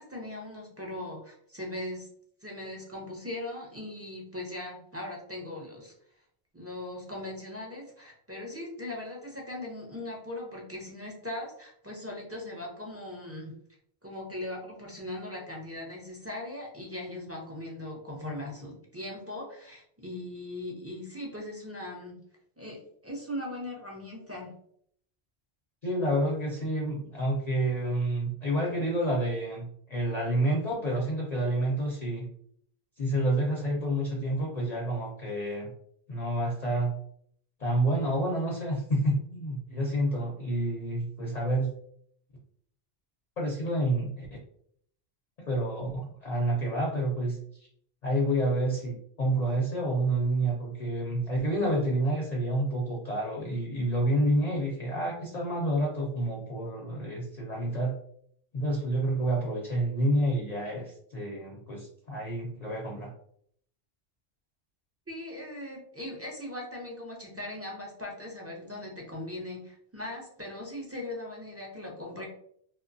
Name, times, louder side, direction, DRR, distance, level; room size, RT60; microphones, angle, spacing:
voice 1, 0.0-2.1 2.4-5.9 6.5-13.5 14.0-22.2 22.6-24.5 65.1-72.3, left 1 dB, 25° right, -2 dB, 0.3 m, -39 dB
voice 2, 25.8-32.3 33.0-35.7 36.1-36.9 37.6-41.7 43.4-44.3 45.5-47.4 48.0-58.0 58.5-63.1, right 1 dB, 50° left, -2 dB, 0.5 m, -29 dB
2.9 x 2.1 x 2.5 m, 0.65 s
omnidirectional pair, 1.1 m